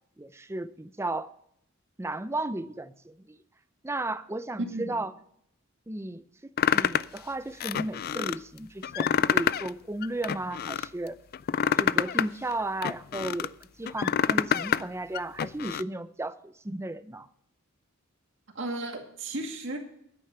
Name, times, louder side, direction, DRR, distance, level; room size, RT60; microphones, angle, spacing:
voice 1, 0.2-1.3 2.0-3.4 3.8-5.1 5.9-6.2 6.7-11.2 11.6-13.5 13.8-17.3, right 2 dB, 15° right, 13 dB, 0.5 m, -34 dB
voice 2, 4.7-5.0 18.5-19.8, right 2 dB, 65° right, 3 dB, 2.1 m, -35 dB
sound 1, 6.6-7.2 7.6-8.4 8.8-9.7 10.0-10.9 11.3-13.5 13.9-14.8 15.1-15.8, left 8 dB, 45° left, 0.3 m, -26 dB
9.9 x 9.2 x 6.7 m, 0.71 s
head